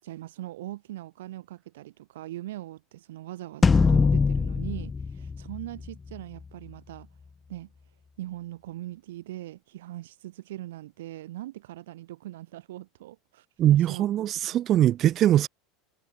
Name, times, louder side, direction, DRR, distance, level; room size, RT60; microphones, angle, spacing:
voice 1, 0.0-7.1 7.5-7.7 8.2-14.1 14.4-14.5, right 15 dB, 90° right, 4.4 m, -41 dB
sound 1, 3.6-6.2, left 5 dB, 20° left, 2.2 m, -23 dB
voice 2, 13.6-15.5, right 12 dB, 40° right, 0.9 m, -21 dB
supercardioid pair, 125°, 0 cm